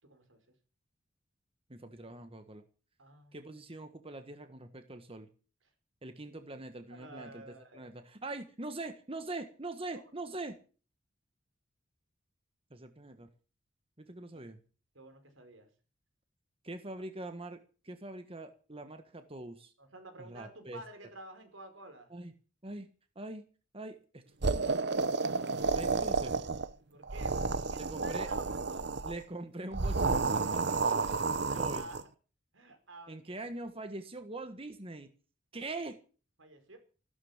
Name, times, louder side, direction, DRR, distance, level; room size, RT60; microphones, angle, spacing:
voice 1, 0.0-0.4 3.0-3.4 6.9-7.9 9.9-10.1 14.3-14.4 14.9-15.7 19.8-22.1 26.9-28.9 31.4-32.0 32.5-33.4 36.4-36.8, right 2 dB, 85° right, 7 dB, 4.9 m, -51 dB
voice 2, 1.7-2.6 3.3-5.3 6.0-7.4 7.7-10.6 12.7-13.3 14.0-14.6 16.6-19.7 20.2-20.8 22.1-22.3 22.6-22.9 23.1-23.4 23.7-24.2 25.7-26.3 27.7-28.3 29.0-31.2 31.6-31.9 33.1-35.1 35.5-36.0, right 2 dB, 30° right, 8 dB, 1.5 m, -43 dB
sound 1, 24.4-26.7 27.0-29.2 29.7-32.0, right 4 dB, 60° right, 1.0 m, -31 dB
15.5 x 12.5 x 7.2 m, 0.39 s
head